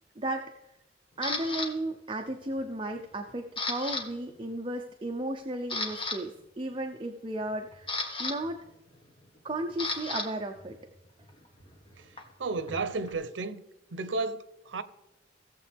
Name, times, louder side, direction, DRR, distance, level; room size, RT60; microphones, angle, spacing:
voice 1, 0.2-0.5 1.2-8.6 9.4-10.8, right 1 dB, 30° right, 0.7 m, -34 dB
Camera, 1.2-1.7 2.3-2.6 3.0-4.0 4.3-4.5 5.1-5.2 5.5-6.2 7.4-10.3 10.5-13.1, left 3 dB, 30° left, 1.5 m, -35 dB
voice 2, 12.4-13.6 13.9-14.8, right 3 dB, 90° right, 0.7 m, -32 dB
17.5 x 7.4 x 3.5 m
head